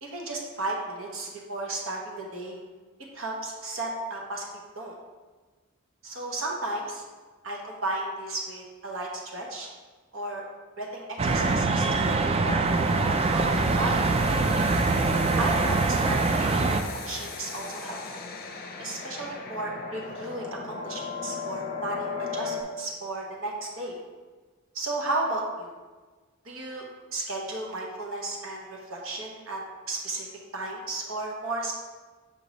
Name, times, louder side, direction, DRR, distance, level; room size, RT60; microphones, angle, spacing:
voice 1, 0.0-2.6 3.1-4.5 4.7-4.9 6.0-7.0 7.4-9.7 10.1-10.4 10.8-14.3 15.4-18.2 18.8-23.9 24.7-25.7 26.4-26.8 27.1-29.6 29.9-30.3 30.5-31.7, right 2 dB, 70° right, -1 dB, 1.0 m, -34 dB
sound 1, 11.2-16.8, right 3 dB, 30° right, 0.3 m, -24 dB
sound 2, 12.6-22.6, left 4 dB, 45° left, 0.6 m, -36 dB
6.0 x 3.1 x 5.1 m, 1.4 s
head